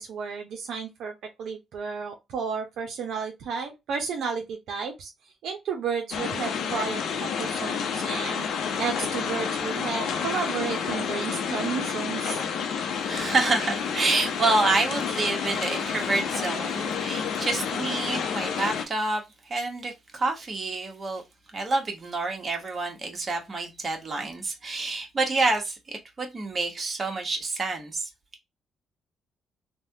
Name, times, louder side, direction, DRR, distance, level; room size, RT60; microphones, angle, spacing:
voice 1, 0.0-5.1 5.4-12.4, right 6 dB, 75° right, 0.7 m, -32 dB
sound 1, 6.1-18.9, left 6 dB, 75° left, 0.6 m, -29 dB
voice 2, 13.0-21.2 21.5-28.1, right 3 dB, 35° right, 1.2 m, -28 dB
3.3 x 2.2 x 2.7 m
cardioid pair, 90°, 0 cm